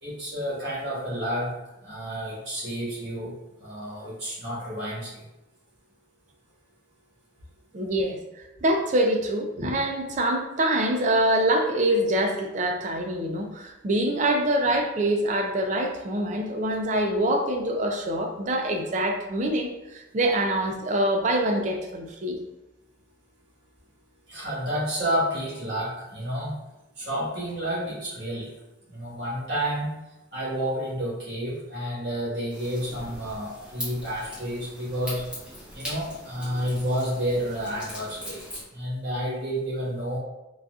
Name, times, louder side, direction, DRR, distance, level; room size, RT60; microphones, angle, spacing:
voice 1, 0.0-1.5 1.8-5.2 24.3-26.6 26.9-28.5 28.9-30.0 30.3-35.3 35.7-38.4 38.7-40.2, equal, 55° right, -7 dB, 1.4 m, -30 dB
voice 2, 7.7-22.4, right 1 dB, 40° right, 3 dB, 0.4 m, -25 dB
sound 1, 32.5-38.6, equal, 5° right, 0.9 m, -40 dB
3.9 x 2.3 x 2.4 m, 0.94 s
head